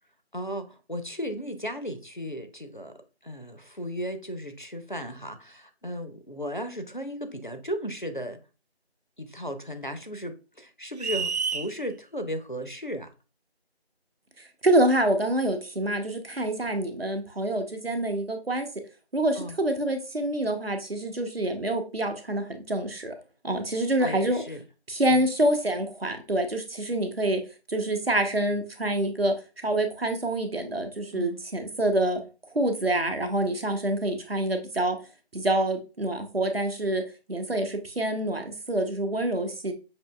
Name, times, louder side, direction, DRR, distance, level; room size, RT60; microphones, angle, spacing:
voice 1, 0.3-8.4 9.2-13.1 19.4-19.6 24.0-24.6 25.1-25.3 31.1-31.4, equal, 50° left, 0.5 m, -35 dB
sound 1, 11.0-11.7, right 5 dB, 85° right, 0.6 m, -28 dB
voice 2, 14.6-18.7 19.1-23.1 23.4-24.4 24.9-27.4 27.7-29.3 29.6-32.2 32.5-35.0 35.3-37.0 37.3-39.7, right 1 dB, 65° right, 0.8 m, -26 dB
5.9 x 2.8 x 2.2 m
figure-of-eight pair, 175°, 32 cm